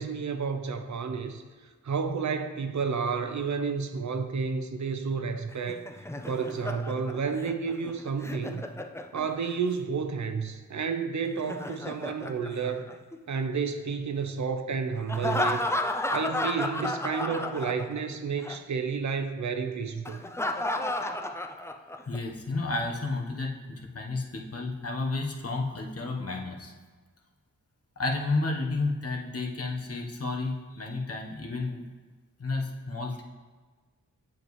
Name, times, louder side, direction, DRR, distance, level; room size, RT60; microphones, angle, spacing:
voice 1, 0.0-1.4 1.8-5.9 6.3-8.8 9.1-12.9 13.3-15.6 16.1-20.2, right 5 dB, 65° right, 8 dB, 0.7 m, -31 dB
Laughter, 5.5-9.6 11.2-13.4 15.1-18.2 18.4-18.6 20.1-22.2, left 1 dB, 10° left, 0.5 m, -32 dB
voice 2, 22.1-26.7 28.0-31.8 32.4-33.2, left 3 dB, 50° left, 1 dB, 1.2 m, -31 dB
7.7 x 7.2 x 3.2 m, 1.4 s
cardioid pair, 65°, 31 cm